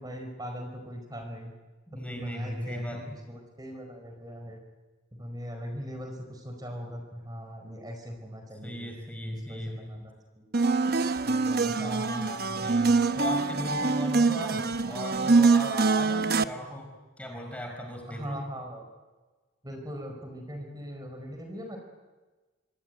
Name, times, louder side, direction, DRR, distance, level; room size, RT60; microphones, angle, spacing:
voice 1, 0.0-1.5 1.9-3.0 3.3-4.6 5.1-8.9 9.3-10.5 11.2-12.0 12.5-12.8 18.1-18.8 19.6-21.8, equal, 20° right, 4 dB, 5.0 m, -40 dB
voice 2, 1.9-3.2 8.6-10.0 11.8-18.4, equal, 5° left, 3 dB, 4.7 m, -37 dB
sound 1, 10.5-16.4, right 4 dB, 50° right, 0.9 m, -24 dB
26.5 x 24.0 x 9.4 m, 1.3 s
head